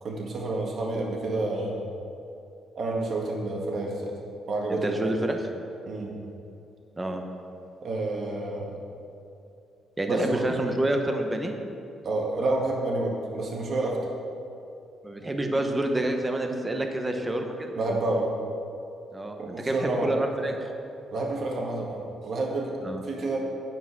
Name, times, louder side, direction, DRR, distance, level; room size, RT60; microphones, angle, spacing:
voice 1, 0.0-1.8 2.8-4.2 4.5-5.0 5.9-6.1 7.8-8.8 10.1-10.4 12.0-14.1 17.8-18.3 19.4-20.1 21.1-23.4, right 2 dB, 55° right, -1 dB, 1.8 m, -29 dB
voice 2, 4.7-5.5 7.0-7.2 10.0-11.5 15.0-17.7 19.1-20.7 22.8-23.0, right 1 dB, 20° right, 4 dB, 1.1 m, -28 dB
9.2 x 5.9 x 6.1 m, 2.6 s
cardioid pair, 90°, 0 cm